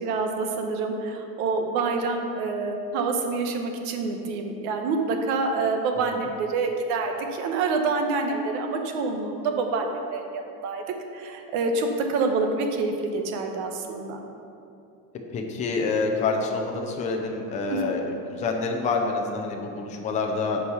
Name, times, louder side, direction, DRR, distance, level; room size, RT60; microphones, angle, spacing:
voice 1, 0.0-10.8 11.1-14.2 17.7-18.0, right 3 dB, 85° right, 4 dB, 1.2 m, -27 dB
voice 2, 15.3-20.6, left 4 dB, 15° left, 1 dB, 0.5 m, -27 dB
8.4 x 4.8 x 6.9 m, 2.6 s
cardioid pair, 180°, 43 cm